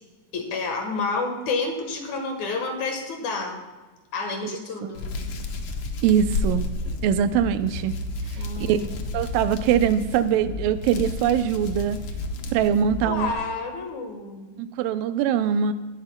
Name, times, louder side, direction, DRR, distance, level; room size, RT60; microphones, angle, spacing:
voice 1, 0.3-3.6 4.1-5.0 8.4-9.1 13.0-14.6, left 3 dB, 65° left, 3 dB, 2.5 m, -29 dB
Hands, 4.9-13.3, left 2 dB, 80° left, 1.2 m, -31 dB
voice 2, 6.0-6.7 7.0-8.0 8.7-8.8 9.1-12.0 12.5-13.3 14.6-15.7, right 9 dB, 85° right, 12 dB, 2.3 m, -22 dB
17.5 x 11.0 x 2.2 m, 1.2 s
omnidirectional pair, 3.9 m